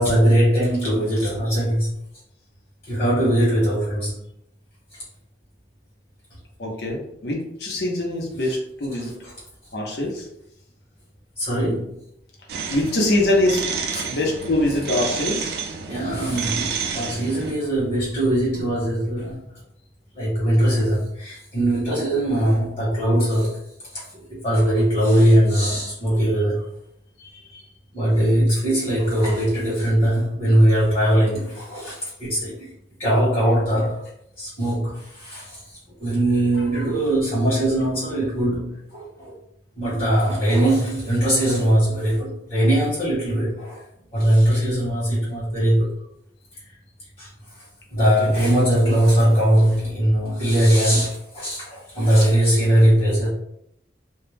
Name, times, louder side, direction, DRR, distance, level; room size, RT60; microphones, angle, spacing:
voice 1, 0.0-2.0 2.8-4.1 4.9-5.0 9.0-9.3 11.4-12.0 13.9-14.1 15.9-19.4 20.1-23.6 23.9-26.6 27.9-32.7 33.0-34.1 34.4-39.3 39.7-43.8 44.1-45.9 47.2-53.3, right 1 dB, 30° left, -9 dB, 0.9 m, -20 dB
voice 2, 6.6-9.2 9.7-10.3 12.7-15.5 27.2-27.6 36.5-36.6 48.0-48.4, left 1 dB, 75° left, -1 dB, 0.7 m, -24 dB
sound 1, 12.5-17.5, right 5 dB, 65° right, 0.3 m, -30 dB
2.2 x 2.0 x 3.2 m, 0.76 s
head